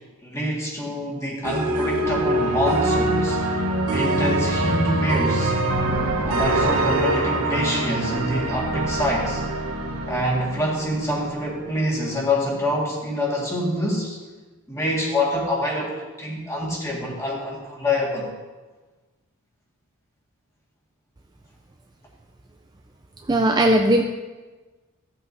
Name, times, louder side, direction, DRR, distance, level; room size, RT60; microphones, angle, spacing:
voice 1, 0.2-3.4 3.9-5.5 6.2-9.4 10.1-14.2 14.7-18.3, left 1 dB, 15° left, -3 dB, 1.8 m, -26 dB
sound 1, 1.4-11.5, right 1 dB, 85° right, 1.1 m, -24 dB
voice 2, 23.3-24.0, right 1 dB, 20° right, 2 dB, 0.4 m, -18 dB
14.5 x 7.9 x 2.7 m, 1.3 s
head